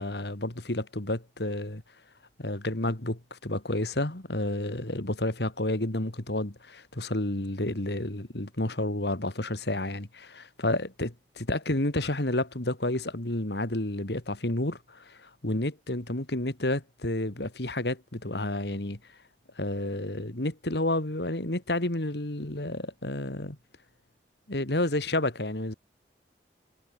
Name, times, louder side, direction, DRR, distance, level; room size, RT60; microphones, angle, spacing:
voice 1, 0.0-1.8 2.4-19.0 19.6-23.6 24.5-25.7, left 1 dB, 65° left, 2.6 m, -30 dB
head